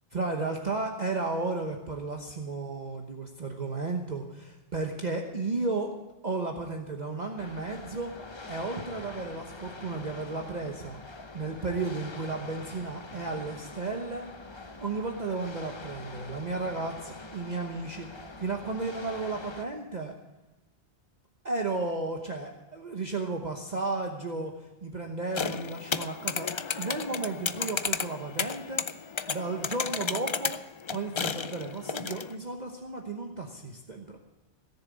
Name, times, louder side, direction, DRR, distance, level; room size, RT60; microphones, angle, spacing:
voice 1, 0.1-5.9 6.2-8.1 8.5-11.0 11.3-14.3 14.8-20.1 21.4-26.5 26.7-28.8 29.3-30.5 30.9-34.2, right 3 dB, 40° right, 2 dB, 1.2 m, -33 dB
sound 1, 7.4-19.6, left 3 dB, 25° left, 0.8 m, -45 dB
sound 2, 25.3-32.4, left 6 dB, 50° left, 0.3 m, -33 dB
17.0 x 7.0 x 8.5 m, 1.0 s
omnidirectional pair, 1.2 m